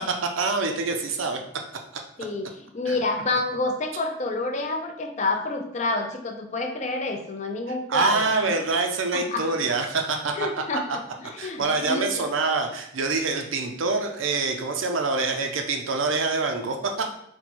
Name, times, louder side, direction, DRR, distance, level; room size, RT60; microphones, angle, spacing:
voice 1, 0.0-1.4 2.9-3.0 7.9-10.4 11.4-17.1, right 3 dB, 85° right, 4 dB, 0.6 m, -25 dB
voice 2, 2.2-8.2 9.1-9.5 10.4-10.8 11.2-12.1, left 2 dB, 35° left, 4 dB, 0.5 m, -28 dB
4.3 x 2.2 x 4.2 m, 0.72 s
head